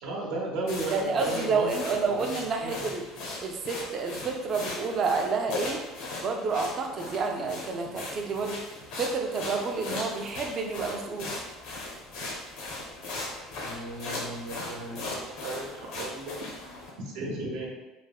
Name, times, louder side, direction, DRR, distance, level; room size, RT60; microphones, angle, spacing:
voice 1, 0.0-1.7 2.1-2.9 13.6-16.3 17.0-17.7, right 2 dB, 85° right, -3 dB, 0.8 m, -35 dB
sound 1, 0.7-16.9, left 2 dB, 70° left, 0.7 m, -38 dB
voice 2, 0.9-3.0 3.4-5.8 6.2-8.6 9.0-11.3, right 4 dB, 35° right, 3 dB, 0.3 m, -29 dB
3.2 x 2.0 x 2.3 m, 1.1 s
cardioid pair, 160°, 0 cm